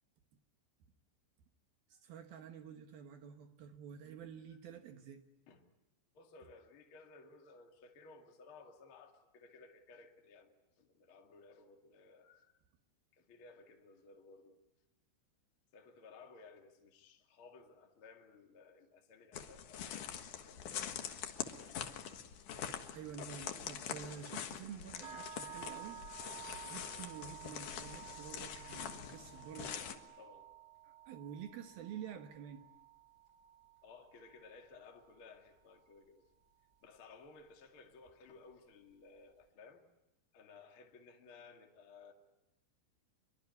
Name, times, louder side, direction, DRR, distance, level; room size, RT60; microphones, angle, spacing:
voice 1, 2.0-5.2 22.9-26.0 26.6-30.0 30.8-32.6, right 8 dB, 65° right, 7 dB, 2.7 m, -49 dB
voice 2, 6.1-12.6 13.1-14.6 15.7-20.1 20.5-20.6 29.6-30.5 33.8-36.2 36.8-39.8 40.3-42.1, left 4 dB, 40° left, 3 dB, 2.2 m, -58 dB
sound 1, 19.3-30.0, left 8 dB, 60° left, 2.2 m, -44 dB
sound 2, 25.0-35.1, right 9 dB, 20° right, 2.3 m, -53 dB
25.0 x 23.5 x 9.6 m, 0.88 s
omnidirectional pair, 5.5 m